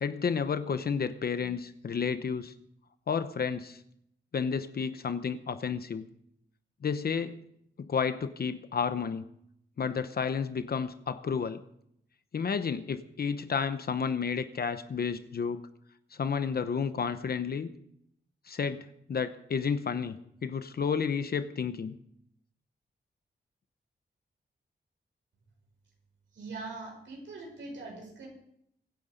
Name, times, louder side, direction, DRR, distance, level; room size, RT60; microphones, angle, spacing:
voice 1, 0.0-2.5 3.1-3.8 4.3-6.1 6.8-7.4 7.8-9.3 9.8-11.6 12.3-15.6 16.1-17.7 18.5-21.9, left 6 dB, 55° left, 10 dB, 0.9 m, -31 dB
voice 2, 26.3-28.3, right 3 dB, 85° right, 0 dB, 5.9 m, -42 dB
24.0 x 9.9 x 5.2 m, 0.72 s
wide cardioid pair, 175°, 19 cm